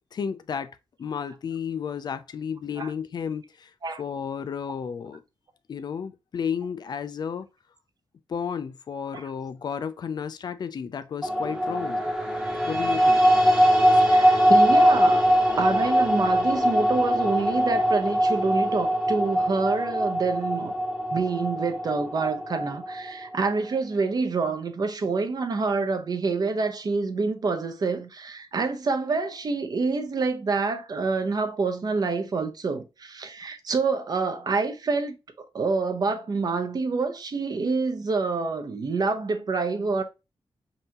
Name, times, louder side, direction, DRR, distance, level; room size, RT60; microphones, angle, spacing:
voice 1, 0.1-0.7 1.0-3.7 4.0-5.2 5.7-7.5 8.3-12.0 12.7-13.2 13.9-14.0, left 7 dB, 50° left, 0.4 m, -32 dB
sound 1, 11.2-23.4, equal, 5° right, 0.9 m, -22 dB
voice 2, 14.0-15.2 15.6-20.8 21.1-35.1 35.5-40.0, right 4 dB, 45° right, 0.7 m, -27 dB
5.3 x 2.7 x 2.9 m
wide cardioid pair, 160°, 9 cm